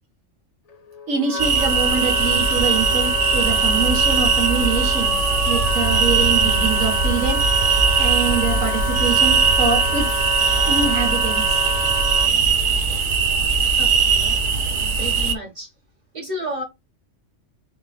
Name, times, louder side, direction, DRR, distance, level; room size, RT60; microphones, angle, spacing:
Wind instrument woodwind instrument, 0.7-12.3, left 2 dB, 80° left, 0.3 m, -27 dB
voice 1, 1.1-5.2 5.5-7.5 8.0-10.1 10.7-11.6, right 5 dB, 90° right, 1.7 m, -25 dB
sound 1, 1.4-15.3, right 5 dB, 55° right, 0.6 m, -20 dB
voice 2, 13.6-14.4 15.0-15.7 16.1-16.6, equal, 25° right, 1.4 m, -32 dB
3.7 x 3.1 x 2.4 m
omnidirectional pair, 1.3 m